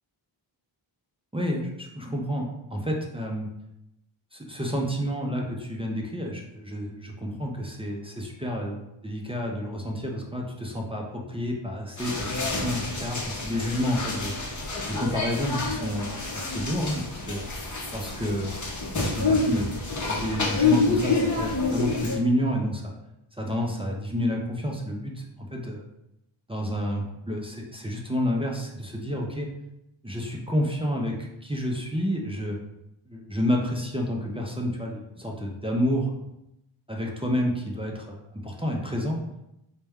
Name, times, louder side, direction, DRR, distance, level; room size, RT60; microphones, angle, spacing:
voice 1, 1.3-3.5 4.3-14.3 14.9-17.4 17.9-18.6 19.0-19.8 20.1-23.0 23.4-25.8 26.5-29.5 30.0-32.6 33.1-36.1 36.9-39.2, equal, 15° right, -1 dB, 0.4 m, -29 dB
sound 1, 12.0-22.2, left 3 dB, 40° left, 0.7 m, -28 dB
4.3 x 2.1 x 3.4 m, 0.87 s
wide cardioid pair, 115°, 48 cm